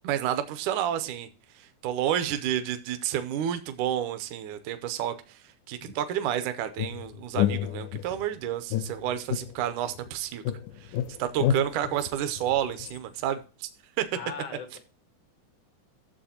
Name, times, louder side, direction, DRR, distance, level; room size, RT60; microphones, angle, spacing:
voice 1, 0.0-1.3 1.6-5.4 5.7-10.4 10.8-13.7 14.0-14.1, right 11 dB, 80° right, 9 dB, 2.1 m, -30 dB
sound 1, 6.8-8.3 8.7-10.1 10.5-13.0, left 11 dB, 85° left, 2.1 m, -30 dB
voice 2, 14.1-14.8, left 6 dB, 65° left, 8 dB, 1.1 m, -38 dB
11.0 x 7.1 x 2.8 m, 0.34 s
omnidirectional pair, 3.6 m